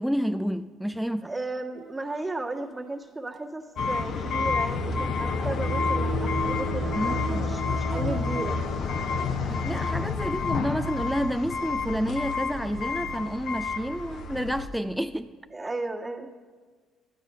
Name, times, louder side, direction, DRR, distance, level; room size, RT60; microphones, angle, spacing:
voice 1, 0.0-1.3 6.9-7.7 9.4-15.4, equal, ahead, 0.4 m, -30 dB
voice 2, 1.2-8.6 15.5-16.3, right 2 dB, 20° right, 1.6 m, -34 dB
sound 1, 1.7-2.7 4.7-9.8 10.6-10.7 11.6-11.7, right 8 dB, 45° right, 0.9 m, -38 dB
sound 2, 3.8-14.7, left 4 dB, 60° left, 0.9 m, -29 dB
12.0 x 9.0 x 5.5 m
hypercardioid pair, 60°, 0 cm